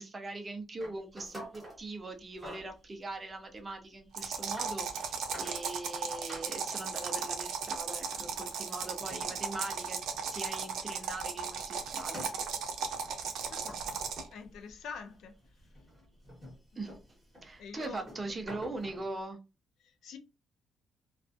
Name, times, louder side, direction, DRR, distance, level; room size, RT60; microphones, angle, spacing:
voice 1, 0.0-12.2 16.8-16.9 17.4-19.4, right 2 dB, 20° right, 0.4 m, -41 dB
sound 1, 0.8-1.8 2.3-2.8 3.6-3.7 4.3-4.7 5.1-6.0 6.3-10.3 10.6-15.0 15.3-19.1, equal, ahead, 1.2 m, -49 dB
sound 2, 4.1-14.3, right 6 dB, 85° right, 0.5 m, -36 dB
voice 2, 13.6-14.0 14.3-15.4 17.6-18.1 19.8-20.2, left 5 dB, 70° left, 0.5 m, -46 dB
2.4 x 2.3 x 2.5 m
cardioid pair, 170°, 0 cm